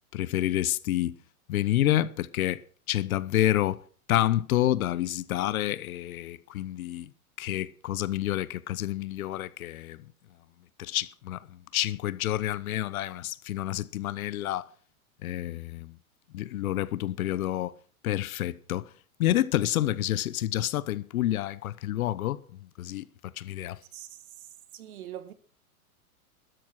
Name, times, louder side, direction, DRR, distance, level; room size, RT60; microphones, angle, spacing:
voice 1, 0.1-1.2 1.5-2.6 2.9-3.8 4.1-7.1 7.4-10.0 10.8-14.7 15.2-15.9 16.3-17.7 18.0-18.9 19.2-22.4 22.8-23.0 23.4-23.8, left 13 dB, 70° left, 1.1 m, -28 dB
voice 2, 23.9-24.5 24.7-25.3, right 11 dB, 75° right, 2.0 m, -43 dB
13.0 x 11.0 x 6.1 m
hypercardioid pair, 125°, 44 cm